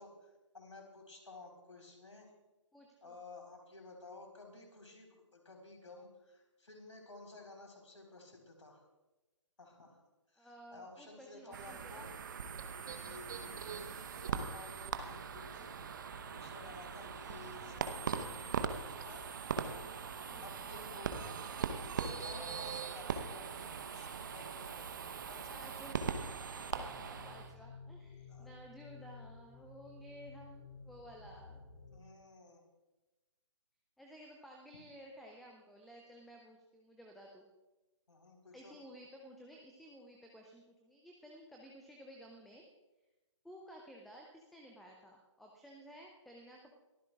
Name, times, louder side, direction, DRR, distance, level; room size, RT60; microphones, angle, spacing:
voice 1, 0.0-2.3 3.0-8.9 9.6-10.0 10.3-12.1 12.9-15.7 16.3-21.3 21.8-25.0 25.3-25.7 28.3-28.5 31.9-32.6 38.1-38.7, left 2 dB, 70° left, 2 dB, 4.0 m, -54 dB
voice 2, 2.7-3.1 10.4-12.0 17.2-17.4 20.2-21.1 25.5-31.6 34.0-37.5 38.5-42.6 43.4-46.8, equal, ahead, 1 dB, 0.4 m, -55 dB
sound 1, 11.5-27.5, right 6 dB, 40° right, 0.9 m, -41 dB
sound 2, 15.4-32.0, left 3 dB, 50° left, 3.5 m, -57 dB
23.0 x 14.5 x 2.4 m, 1.1 s
figure-of-eight pair, 140°, 16 cm